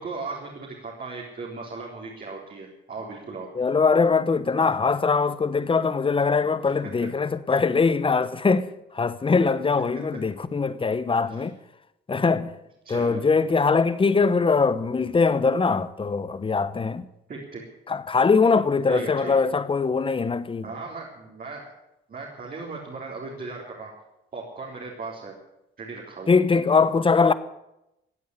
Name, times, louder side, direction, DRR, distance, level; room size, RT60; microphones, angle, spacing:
voice 1, 0.0-3.5 12.8-13.2 17.3-17.7 18.9-19.3 20.6-21.7 22.1-23.9 24.3-25.3 25.8-26.4, right 4 dB, 45° right, 4.0 m, -37 dB
voice 2, 3.5-11.6 12.1-12.6 12.9-17.1 17.9-20.7 26.3-27.3, left 4 dB, 25° left, 1.0 m, -22 dB
16.0 x 8.6 x 9.9 m
cardioid pair, 90°, 20 cm